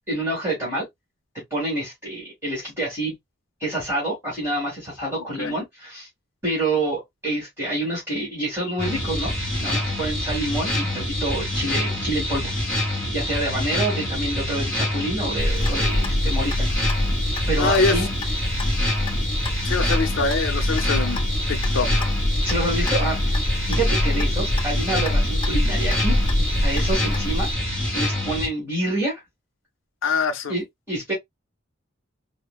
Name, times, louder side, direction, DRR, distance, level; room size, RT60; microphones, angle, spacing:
voice 1, 0.1-0.9 1.5-3.1 3.6-6.1 6.4-12.7 13.1-16.8 17.5-18.1 18.4-18.6 22.4-23.4 23.7-26.2 26.6-27.5 27.9-29.2 30.5-31.1, right 1 dB, 15° right, 1.9 m, -27 dB
sound 1, 8.8-28.5, left 1 dB, 5° left, 1.6 m, -26 dB
Clock, 15.4-27.5, left 1 dB, 25° left, 0.4 m, -25 dB
voice 2, 17.6-18.1 19.6-21.2 21.5-22.1 22.8-22.9 30.0-30.6, left 4 dB, 80° left, 0.6 m, -24 dB
4.3 x 2.2 x 2.2 m
head